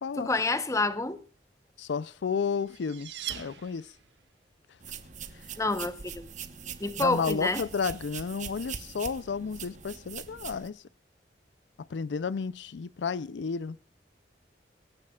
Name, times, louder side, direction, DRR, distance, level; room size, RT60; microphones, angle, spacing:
voice 1, 0.2-1.2 5.6-6.2 6.8-7.6, left 2 dB, 15° left, 0.8 m, -28 dB
voice 2, 1.8-3.9 5.3-5.5 7.0-10.8 11.8-13.8, left 5 dB, 80° left, 0.4 m, -32 dB
sound 1, 2.2-4.3, right 10 dB, 75° right, 1.2 m, -41 dB
sound 2, 4.8-10.7, right 7 dB, 45° right, 1.0 m, -42 dB
25.0 x 9.8 x 2.3 m
head